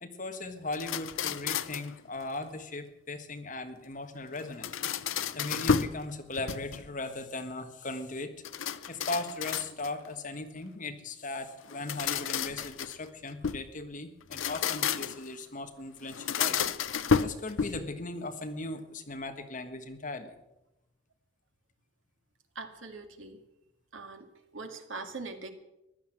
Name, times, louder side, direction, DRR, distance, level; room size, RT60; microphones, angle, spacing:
voice 1, 0.0-8.3 8.9-16.6 17.2-20.4, left 2 dB, 40° left, 7 dB, 1.5 m, -38 dB
sound 1, 0.7-1.9 4.4-6.0 6.3-7.0 8.4-10.1 11.6-13.7 14.2-15.3 16.1-17.9, left 6 dB, 75° left, 0.7 m, -31 dB
voice 2, 22.6-23.4 23.9-24.3 24.5-25.5, right 3 dB, 75° right, 6 dB, 2.1 m, -41 dB
15.5 x 12.0 x 7.7 m, 0.92 s
head